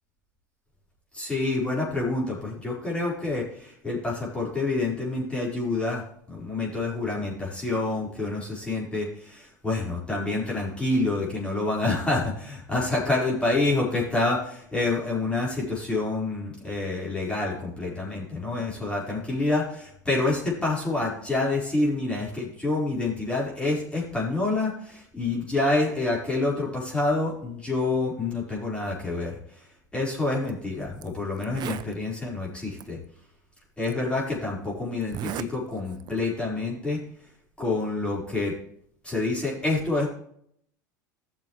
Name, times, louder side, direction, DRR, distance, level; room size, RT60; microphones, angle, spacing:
voice 1, 1.1-29.4 29.9-33.0 33.8-37.0 37.6-38.5 39.0-40.1, left 2 dB, 10° left, -5 dB, 4.5 m, -27 dB
Zipper (clothing), 30.4-30.5 31.0-31.1 31.4-31.9 32.8-32.9 33.8-33.9 35.0-35.5 35.9-36.2, right 11 dB, 45° right, 0.6 m, -35 dB
14.5 x 7.0 x 3.2 m, 0.66 s
hypercardioid pair, 85°, 10 cm